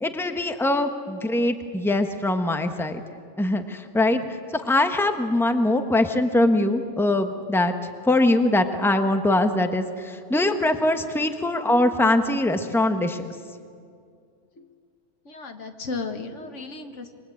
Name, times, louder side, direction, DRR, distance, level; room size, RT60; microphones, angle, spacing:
voice 1, 0.0-3.0 3.4-7.7 8.0-13.3, left 1 dB, ahead, 6 dB, 1.2 m, -22 dB
voice 2, 15.3-17.1, left 3 dB, 80° left, 6 dB, 1.9 m, -34 dB
27.0 x 22.5 x 8.7 m, 2.3 s
omnidirectional pair, 1.2 m